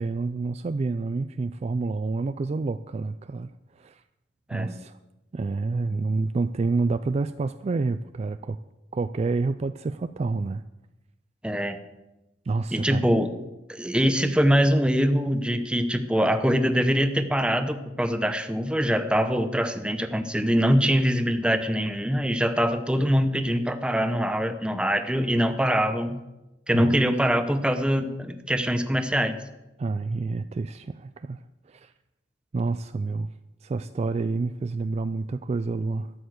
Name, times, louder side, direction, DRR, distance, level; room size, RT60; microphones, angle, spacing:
voice 1, 0.0-3.5 3.8-4.0 4.5-5.0 5.3-8.6 8.9-10.6 12.5-13.1 26.7-27.0 29.8-31.4 31.7-31.9 32.5-33.3 33.6-36.1, right 3 dB, 35° right, 11 dB, 0.3 m, -28 dB
voice 2, 11.4-11.8 12.7-13.3 13.7-26.2 26.7-29.4, equal, 5° right, 8 dB, 0.8 m, -23 dB
13.0 x 7.0 x 7.8 m, 1.0 s
head